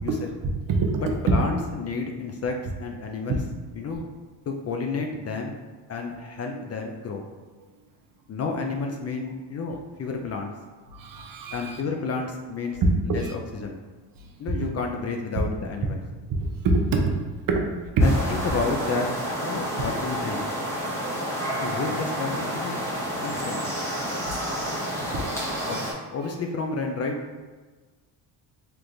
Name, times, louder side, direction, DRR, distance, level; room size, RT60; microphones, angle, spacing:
voice 1, 0.7-1.0 6.5-6.6 10.9-11.8 13.1-13.3 16.3-16.4 16.6-17.1 17.5-17.7 18.0-18.1 19.4-19.5 25.1-25.9, right 3 dB, 50° right, 2 dB, 0.7 m, -25 dB
voice 2, 1.2-3.4 3.7-4.0 4.5-5.6 5.9-7.2 8.3-10.5 11.5-12.8 13.0-13.8 14.4-16.0 18.0-19.1 19.4-20.5 21.6-22.8 23.2-23.7 25.6-25.8 26.1-27.2, left 4 dB, 35° left, 3 dB, 0.4 m, -30 dB
sound 1, 18.0-25.9, equal, 5° left, 1.0 m, -30 dB
3.4 x 2.9 x 2.6 m, 1.3 s
supercardioid pair, 75°, 44 cm